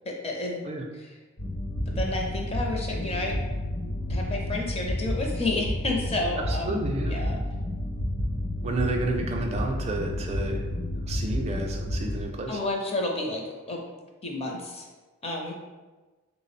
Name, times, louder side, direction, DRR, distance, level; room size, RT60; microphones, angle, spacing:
voice 1, 0.1-0.7 0.9-1.1 1.9-3.4 4.1-6.8 7.1-7.4 12.5-13.4 13.7-13.8 14.2-14.9 15.2-15.5, left 2 dB, 30° left, 0 dB, 0.5 m, -30 dB
sound 1, 1.4-12.2, left 1 dB, 70° left, 0.8 m, -30 dB
voice 2, 6.5-7.2 8.6-10.6 11.1-12.6, right 2 dB, 30° right, 2 dB, 0.4 m, -31 dB
3.4 x 2.0 x 4.1 m, 1.2 s
head